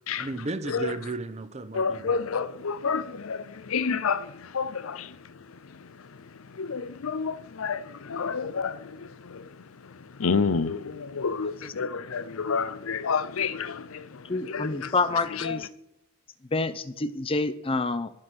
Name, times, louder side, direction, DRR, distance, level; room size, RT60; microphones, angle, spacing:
voice 1, 0.2-2.3, right 3 dB, 30° right, 0.7 m, -34 dB
voice 2, 1.7-5.1 6.6-8.8 9.3-9.5 10.2-14.0 14.5-14.9 15.5-15.6, left 5 dB, 85° left, 0.6 m, -29 dB
voice 3, 11.4-11.7 14.2-15.7 16.5-18.1, left 3 dB, 25° left, 0.6 m, -28 dB
11.0 x 7.6 x 6.2 m
head